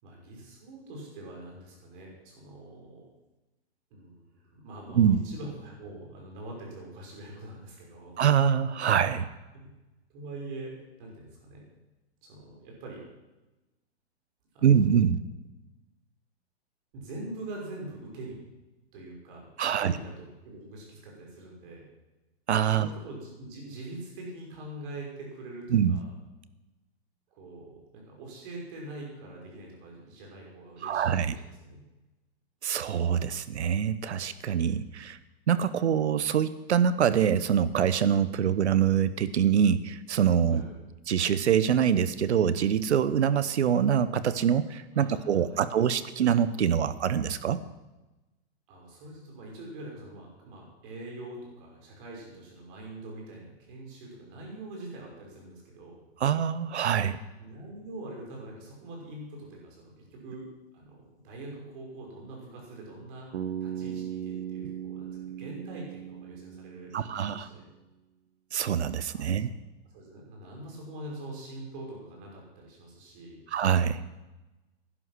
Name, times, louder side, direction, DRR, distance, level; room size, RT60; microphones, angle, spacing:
voice 1, 0.0-3.1 3.9-8.2 9.5-9.7 10.1-11.6 12.2-13.0 14.5-14.7 16.9-18.4 18.9-19.5 19.8-21.9 22.8-26.1 27.3-31.8 40.5-40.9 44.9-46.0 48.7-56.0 57.4-60.5 60.7-63.3 63.6-67.6 69.1-69.4 69.9-73.4, right 2 dB, 50° right, -1 dB, 6.0 m, -44 dB
voice 2, 8.2-9.3 14.6-15.2 19.6-19.9 22.5-22.9 25.7-26.0 30.8-31.3 32.6-35.2 35.5-40.6 41.1-47.6 56.2-57.2 66.9-67.5 68.5-69.5 73.5-74.0, right 8 dB, 85° right, 14 dB, 1.0 m, -24 dB
Bass guitar, 63.3-67.4, right 10 dB, 70° right, 1.5 m, -38 dB
11.5 x 11.0 x 6.2 m, 1.1 s
hypercardioid pair, 130°, 33 cm